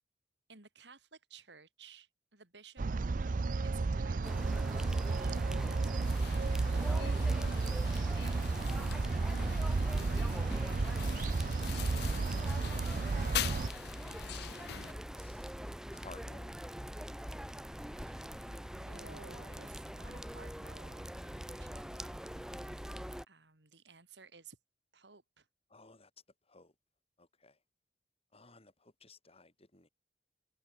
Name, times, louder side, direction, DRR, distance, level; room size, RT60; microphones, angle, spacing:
voice 1, 0.5-6.2 18.0-18.3 18.7-22.2 23.3-24.6 24.9-25.5, right 4 dB, 75° right, 3.9 m, -56 dB
sound 1, 2.8-13.7, right 3 dB, 50° right, 0.5 m, -32 dB
sound 2, 4.2-23.2, equal, 5° right, 1.1 m, -44 dB
sound 3, 6.0-14.9, left 10 dB, 65° left, 0.6 m, -44 dB
voice 2, 8.3-8.9 10.6-11.0 11.4-11.8 14.2-15.5 15.9-16.5 25.7-26.1 26.5-26.7 27.2-27.6 28.3-29.9, left 3 dB, 35° left, 6.3 m, -57 dB
head